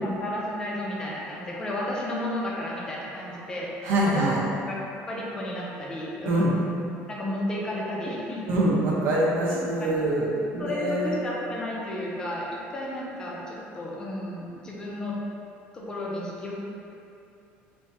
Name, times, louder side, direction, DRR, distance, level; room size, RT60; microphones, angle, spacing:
voice 1, 0.0-4.8 5.1-6.6 7.1-8.5 9.5-9.9 10.6-15.2 15.7-16.5, left 1 dB, 15° left, -4 dB, 0.5 m, -33 dB
voice 2, 3.8-4.4 6.3-6.5 8.5-10.3 10.5-11.1, right 1 dB, 60° right, -4 dB, 0.8 m, -24 dB
4.4 x 2.7 x 3.4 m, 2.6 s
cardioid pair, 175°, 5 cm